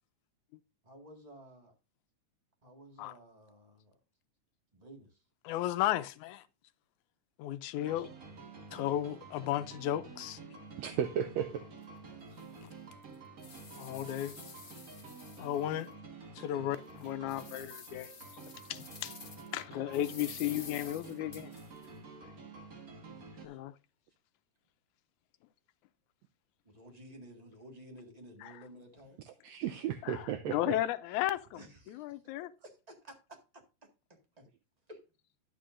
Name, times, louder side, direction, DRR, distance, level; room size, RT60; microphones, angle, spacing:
voice 1, 0.8-1.7 2.6-4.0 4.7-5.2 8.2-8.6 12.0-12.4 23.1-23.6 26.6-29.2 31.5-32.0 32.4-34.5 34.9-35.0, right 1 dB, 20° right, 1.3 m, -54 dB
voice 2, 5.4-6.5 7.4-8.1 8.7-10.4 13.8-14.4 15.4-15.9 16.4-19.2 19.5-21.5 23.4-23.8 28.4-28.6 30.0-32.5, left 13 dB, 80° left, 2.0 m, -35 dB
sound 1, 7.8-23.5, right 4 dB, 40° right, 1.4 m, -50 dB
voice 3, 10.8-11.5 29.4-30.7, right 9 dB, 75° right, 1.7 m, -34 dB
sound 2, 11.8-11.9 12.4-12.5 13.0-15.9 16.3-16.4 16.9-19.6 19.9-21.9, left 5 dB, 55° left, 0.7 m, -50 dB
11.5 x 8.4 x 2.5 m
omnidirectional pair, 3.4 m